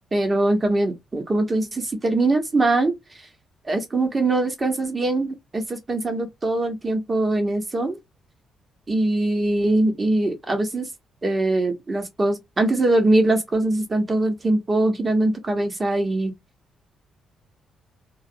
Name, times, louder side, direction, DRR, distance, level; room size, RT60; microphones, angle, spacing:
voice 1, 0.1-3.0 3.7-8.0 8.9-10.9 11.2-16.3, right 2 dB, 30° right, 1.0 m, -22 dB
2.3 x 2.0 x 2.7 m
supercardioid pair, 65°, 0 cm